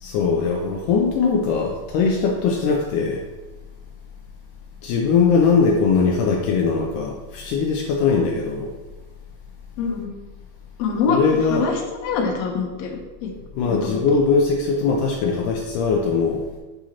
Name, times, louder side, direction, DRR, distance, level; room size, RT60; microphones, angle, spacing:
voice 1, 0.0-3.2 4.8-8.7 11.1-11.7 13.6-16.5, left 5 dB, 90° left, 1 dB, 1.8 m, -20 dB
voice 2, 9.8-10.1 10.8-11.7 12.0-13.3 13.6-14.2, left 5 dB, 75° left, 1 dB, 1.6 m, -25 dB
9.0 x 5.0 x 2.9 m, 1.2 s
omnidirectional pair, 4.3 m